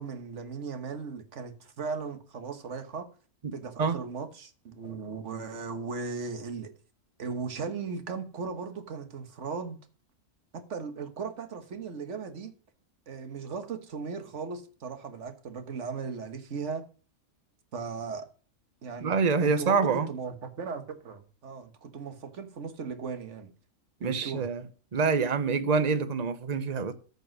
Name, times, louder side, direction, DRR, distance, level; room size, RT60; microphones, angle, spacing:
voice 1, 0.0-3.1 3.5-6.7 7.2-9.8 10.5-12.5 13.1-16.8 17.7-18.3 18.8-23.5 24.0-24.5, right 5 dB, 65° right, 1.6 m, -37 dB
voice 2, 19.0-20.1 24.0-24.6 24.9-26.9, right 5 dB, 35° right, 1.0 m, -26 dB
14.0 x 5.3 x 6.3 m
omnidirectional pair, 1.4 m